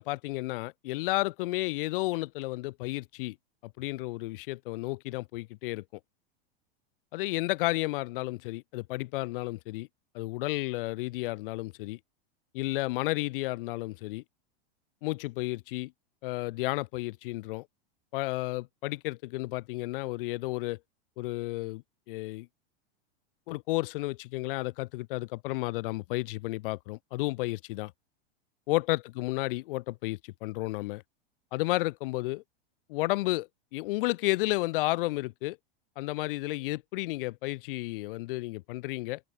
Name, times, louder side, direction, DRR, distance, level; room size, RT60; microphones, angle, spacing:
voice 1, 0.0-3.4 3.6-5.8 7.1-9.9 10.1-12.0 12.5-14.2 15.0-15.9 16.2-17.7 18.1-20.8 21.2-22.5 23.5-27.9 28.7-31.0 31.5-32.4 32.9-35.6 36.0-39.2, left 20 dB, 55° left, 4.4 m, -32 dB
supercardioid pair, 155°, 32 cm